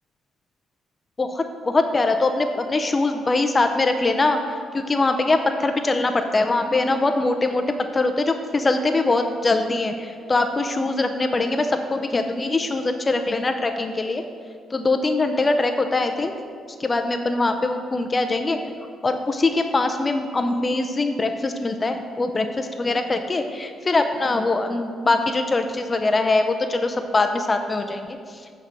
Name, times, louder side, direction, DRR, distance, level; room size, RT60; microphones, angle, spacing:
voice 1, 1.2-4.4 4.7-7.6 7.9-14.2 14.7-16.3 16.8-18.6 19.0-28.2, left 2 dB, 25° left, 6 dB, 0.6 m, -22 dB
8.8 x 4.8 x 6.0 m, 2.1 s
cardioid pair, 90°, 0 cm